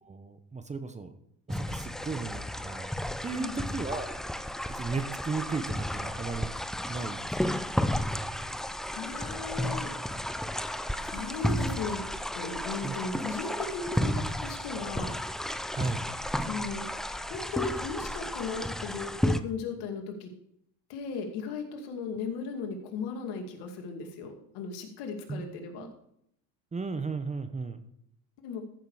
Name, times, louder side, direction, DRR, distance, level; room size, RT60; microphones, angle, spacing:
voice 1, 0.0-1.1 1.5-2.9 3.2-4.2 4.7-6.5 6.8-7.6 12.8-12.9 15.7-16.0 25.3-25.5 25.8-25.9 26.7-27.8, right 4 dB, 15° right, 10 dB, 1.0 m, -35 dB
sound 1, 1.5-19.4, equal, ahead, 0.3 m, -33 dB
voice 2, 3.3-3.7 8.9-9.9 10.7-12.0 12.4-15.1 16.4-16.8 17.3-20.3 20.9-25.9 28.4-28.6, left 5 dB, 75° left, 4 dB, 2.5 m, -37 dB
14.0 x 6.6 x 4.8 m, 0.73 s
supercardioid pair, 110°, 41 cm